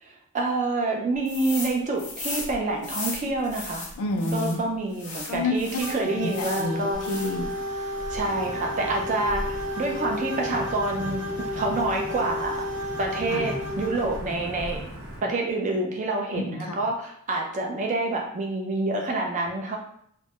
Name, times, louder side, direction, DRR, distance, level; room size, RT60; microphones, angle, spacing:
voice 1, 0.0-3.9 4.3-7.0 8.1-11.2 11.5-12.7 13.0-14.8 15.2-19.8, right 2 dB, 35° right, 1 dB, 0.3 m, -27 dB
sound 1, 1.3-1.7 2.0-4.6 4.9-6.7 7.0-7.5, left 3 dB, 35° left, 0.6 m, -35 dB
voice 2, 4.0-4.6 5.3-5.5 6.2-7.5 13.3-13.5 16.3-16.8, left 2 dB, 85° left, 3 dB, 0.4 m, -29 dB
sound 2, 5.8-14.2, left 1 dB, 5° right, 0.7 m, -32 dB
Wind / Thunder / Rain, 6.9-15.2, equal, 85° right, 0.7 m, -38 dB
2.1 x 2.0 x 2.8 m, 0.68 s
head